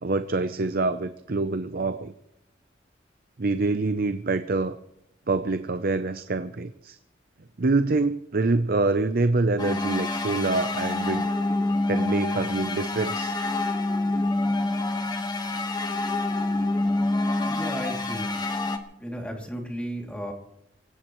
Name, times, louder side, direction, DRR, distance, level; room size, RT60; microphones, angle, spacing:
voice 1, 0.0-2.1 3.4-4.8 5.3-7.0 7.6-11.3 11.9-13.4, right 3 dB, 55° right, 11 dB, 0.7 m, -25 dB
sound 1, 9.6-18.8, left 2 dB, 25° left, 1.4 m, -27 dB
voice 2, 17.4-18.5 19.0-20.3, equal, 5° left, 1 dB, 2.7 m, -34 dB
24.0 x 16.5 x 3.1 m, 0.83 s
head